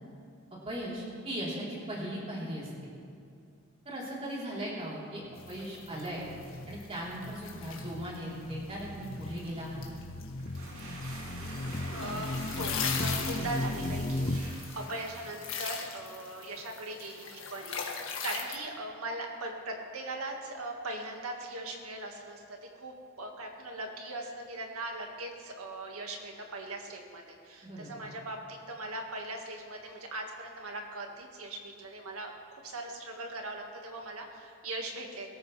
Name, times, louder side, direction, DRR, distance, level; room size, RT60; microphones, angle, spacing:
voice 1, 0.6-2.9 3.9-6.3 6.7-9.9 27.6-28.1, equal, 30° right, -6 dB, 3.9 m, -38 dB
sound 1, 5.3-18.5, left 6 dB, 65° left, 1.9 m, -40 dB
sound 2, 5.3-14.4, left 1 dB, 40° left, 0.7 m, -37 dB
sound 3, 10.4-16.0, right 2 dB, 65° right, 3.0 m, -47 dB
voice 2, 11.9-35.3, right 2 dB, 85° right, 2 dB, 1.9 m, -40 dB
22.5 x 13.5 x 3.4 m, 2.5 s
head